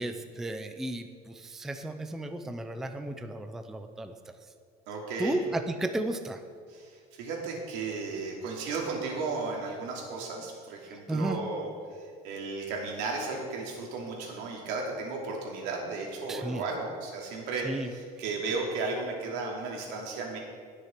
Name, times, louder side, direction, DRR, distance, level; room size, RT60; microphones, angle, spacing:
voice 1, 0.0-4.3 5.2-6.4 10.9-11.4 16.3-16.7 17.6-17.9, right 1 dB, ahead, 7 dB, 0.3 m, -34 dB
voice 2, 4.9-5.4 6.7-20.4, right 3 dB, 80° right, -1 dB, 2.7 m, -34 dB
19.5 x 6.6 x 4.5 m, 2.1 s
cardioid pair, 175°, 18 cm